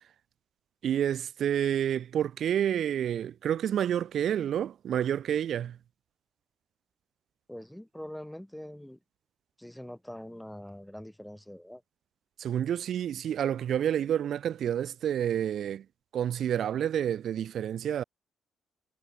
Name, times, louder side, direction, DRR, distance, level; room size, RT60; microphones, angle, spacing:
voice 1, 0.8-5.8 12.4-15.8 16.1-18.0, right 10 dB, 65° right, 2.7 m, -29 dB
voice 2, 7.5-9.0 9.6-11.8, equal, 5° left, 3.4 m, -43 dB
cardioid pair, 90°, 0 cm